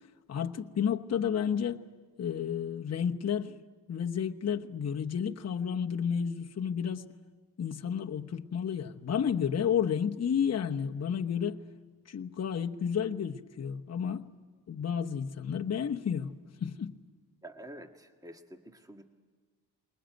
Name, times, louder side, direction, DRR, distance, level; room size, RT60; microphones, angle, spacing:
voice 1, 0.3-1.8 2.2-3.6 3.9-7.1 7.6-11.6 12.1-14.3 14.7-16.9, left 7 dB, 40° left, 1.0 m, -31 dB
voice 2, 17.4-19.0, right 1 dB, 10° right, 1.6 m, -48 dB
21.0 x 20.5 x 9.2 m
cardioid pair, 80°, 41 cm